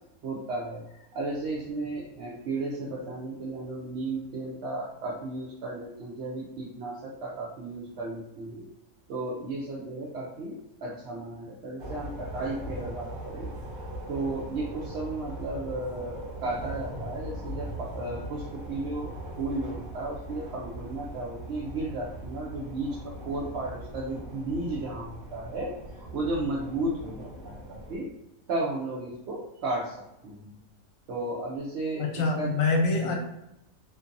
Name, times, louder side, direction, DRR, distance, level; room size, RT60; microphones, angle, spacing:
voice 1, 0.2-8.6 9.1-13.5 14.1-28.1 28.5-30.6 31.1-32.6 33.0-33.1, right 2 dB, 65° right, -4 dB, 0.7 m, -34 dB
sound 1, 11.8-28.0, right 1 dB, 45° right, 1.1 m, -40 dB
voice 2, 32.0-33.1, left 3 dB, 75° left, 1 dB, 1.1 m, -25 dB
2.6 x 2.5 x 2.5 m, 0.86 s
omnidirectional pair, 1.4 m